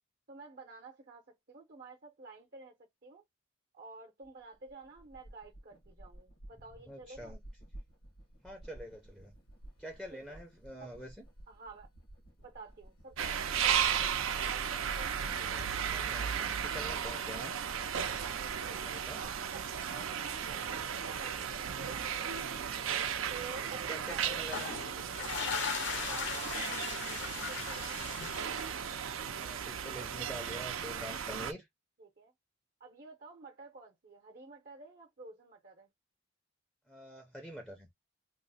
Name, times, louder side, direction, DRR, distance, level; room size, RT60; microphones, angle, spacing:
voice 1, 0.3-3.2 3.7-7.3 10.1-10.4 10.8-10.9 11.5-11.9 12.4-14.1 14.4-15.9 18.6-22.5 23.3-24.5 26.1-28.0 32.0-32.3 32.8-35.9, right 3 dB, 50° right, 0.7 m, -51 dB
sound 1, 4.2-19.5, right 1 dB, 90° left, 1.2 m, -54 dB
voice 2, 6.9-7.4 8.4-9.3 9.8-11.2 15.8-17.5 18.8-19.2 23.9-24.7 29.3-31.7 36.9-37.9, equal, ahead, 0.5 m, -46 dB
sound 2, 13.2-31.5, right 8 dB, 85° right, 0.5 m, -35 dB
sound 3, 24.4-29.0, left 6 dB, 60° left, 0.6 m, -38 dB
3.0 x 2.0 x 4.0 m
head